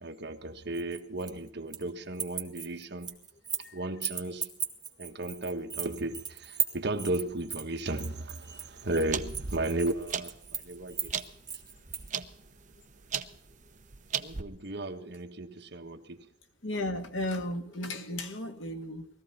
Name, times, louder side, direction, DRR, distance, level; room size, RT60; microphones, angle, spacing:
voice 1, 0.0-3.2 3.7-4.5 5.0-11.1 14.2-16.2, right 2 dB, 60° right, 1.5 m, -35 dB
sound 1, 0.7-1.9 2.1-3.7 4.0-12.1, right 7 dB, 20° right, 1.8 m, -36 dB
sound 2, 8.5-14.4, right 7 dB, 40° right, 0.9 m, -38 dB
voice 2, 16.6-19.1, left 1 dB, 80° left, 2.1 m, -34 dB
20.5 x 15.0 x 4.3 m
head